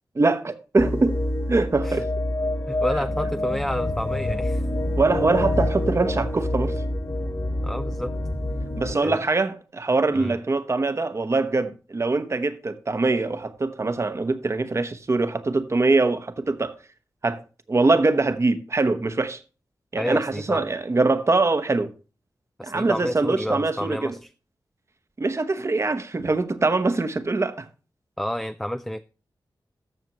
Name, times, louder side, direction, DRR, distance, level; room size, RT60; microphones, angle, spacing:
voice 1, 0.1-1.2 1.5-2.1 2.9-3.0 5.0-6.8 8.8-16.7 17.2-17.4 17.7-19.4 19.9-21.9 22.6-24.1 25.2-27.7, right 3 dB, 35° right, 0.9 m, -23 dB
sound 1, 0.8-9.0, left 1 dB, 35° left, 1.7 m, -26 dB
voice 2, 2.7-4.6 7.6-8.1 9.0-9.2 10.1-10.4 20.0-20.7 22.6-24.3 28.2-29.0, equal, 5° left, 0.3 m, -29 dB
13.5 x 6.6 x 2.9 m
wide cardioid pair, 100°, 8 cm